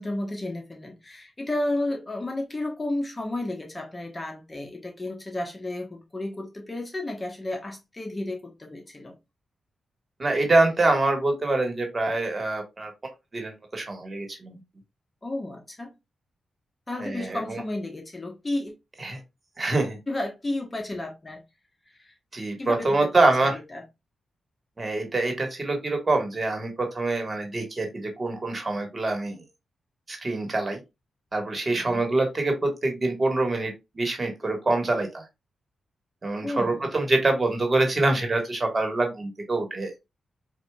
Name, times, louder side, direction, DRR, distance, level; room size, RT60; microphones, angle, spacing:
voice 1, 0.0-9.1 15.2-15.9 16.9-18.7 20.1-21.4 22.0-22.1 22.6-23.3 23.7-23.8 31.9-32.0 36.4-36.9, left 1 dB, 30° left, 1.1 m, -32 dB
voice 2, 10.2-12.9 13.3-14.5 17.0-17.6 19.0-19.2 19.6-20.0 22.3-23.6 24.8-29.4 30.1-30.8 31.3-35.2 36.2-39.9, right 2 dB, 35° right, 1.5 m, -25 dB
4.5 x 2.7 x 2.3 m
supercardioid pair, 50°, 0 cm